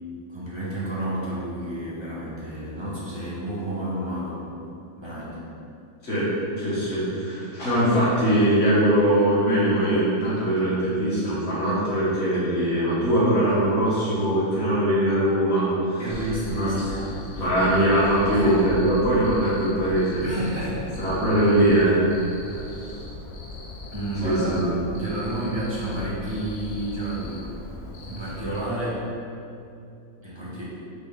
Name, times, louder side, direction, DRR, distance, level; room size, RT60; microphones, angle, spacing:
voice 1, 0.3-4.4 5.0-5.4 16.0-17.5 18.3-18.6 20.2-20.9 23.9-27.5 28.1-29.0 30.2-30.6, right 1 dB, 25° right, -8 dB, 0.7 m, -30 dB
voice 2, 6.6-16.0 16.5-16.8 17.4-20.2 21.0-22.0 22.5-22.6 24.2-24.6, right 1 dB, 50° left, -10 dB, 1.8 m, -21 dB
Cricket, 16.1-28.6, left 1 dB, 75° left, 0.6 m, -38 dB
3.9 x 3.7 x 3.4 m, 2.6 s
omnidirectional pair, 1.7 m